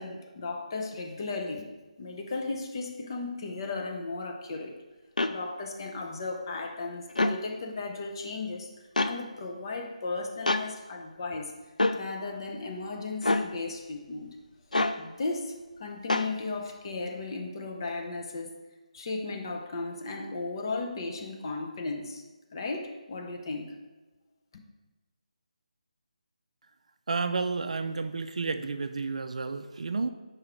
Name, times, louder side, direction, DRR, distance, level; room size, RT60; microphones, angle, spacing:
voice 1, 0.0-1.7 2.0-4.7 5.3-8.7 9.0-11.5 11.9-14.3 15.0-18.5 18.9-22.2 22.5-23.7, left 3 dB, 35° left, 2 dB, 0.7 m, -35 dB
sound 1, 5.2-5.3 7.1-7.4 9.0-9.1 10.5-10.7 11.8-12.0 13.2-13.5 14.7-15.0 16.1-16.3, left 2 dB, 85° left, 0.4 m, -25 dB
voice 2, 27.1-30.1, right 4 dB, 60° right, 9 dB, 0.4 m, -31 dB
4.8 x 4.7 x 4.5 m, 1.2 s
figure-of-eight pair, 155°, 4 cm